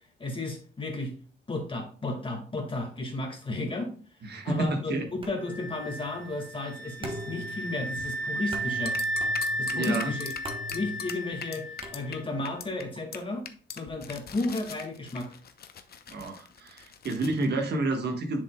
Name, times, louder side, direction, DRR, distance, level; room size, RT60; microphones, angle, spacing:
voice 1, 0.2-1.1 1.5-4.2 4.4-9.0 9.6-10.3 10.7-13.5 13.7-15.4, left 2 dB, 25° left, 2 dB, 1.9 m, -33 dB
voice 2, 4.2-5.1 9.7-10.1 16.1-18.4, right 2 dB, 55° right, 3 dB, 1.4 m, -29 dB
sound 1, 5.2-12.6, right 1 dB, 25° right, 1.3 m, -44 dB
sound 2, 5.5-12.3, right 1 dB, 80° left, 1.0 m, -34 dB
sound 3, 8.9-12.2 12.5-12.8 13.1-13.2 13.5-17.5, left 7 dB, 50° left, 0.8 m, -41 dB
7.4 x 6.2 x 2.3 m, 0.40 s
cardioid pair, 90°, 20 cm